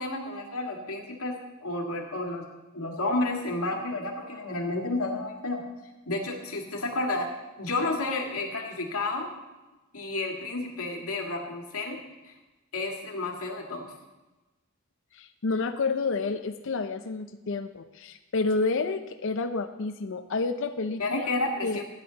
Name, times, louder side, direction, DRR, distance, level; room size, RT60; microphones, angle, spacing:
voice 1, 0.0-1.3 1.6-2.5 2.7-5.6 6.1-7.3 7.6-9.3 9.9-12.0 12.3-12.4 12.7-13.9 21.0-21.8, left 2 dB, 75° left, 1 dB, 2.0 m, -31 dB
voice 2, 15.1-21.3 21.6-21.8, left 3 dB, 60° left, 8 dB, 0.6 m, -29 dB
15.5 x 9.8 x 4.0 m, 1.1 s
head